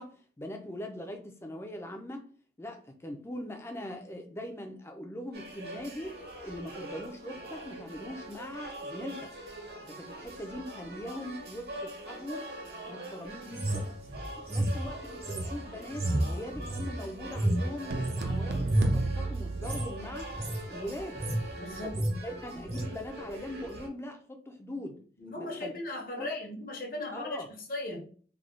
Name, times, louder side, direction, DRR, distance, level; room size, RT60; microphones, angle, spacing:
voice 1, 0.0-2.3 2.6-9.3 9.9-12.5 12.9-14.0 14.4-20.3 20.7-21.2 21.8-25.0 25.4-25.7 26.2-26.4 27.1-27.5, left 1 dB, 15° left, 4 dB, 0.5 m, -41 dB
sound 1, 5.3-23.9, right 1 dB, 60° right, 1.0 m, -44 dB
sound 2, 13.5-18.3 18.6-19.0 19.5-19.9 20.2-20.6 21.0-21.5 21.8-22.2 22.7-22.9, right 1 dB, 35° right, 0.7 m, -31 dB
sound 3, 17.9-20.4, right 2 dB, 80° right, 0.5 m, -32 dB
voice 2, 21.6-22.8 25.2-27.4 27.7-28.1, left 1 dB, 50° left, 0 dB, 0.9 m, -38 dB
3.4 x 2.2 x 3.7 m, 0.44 s
head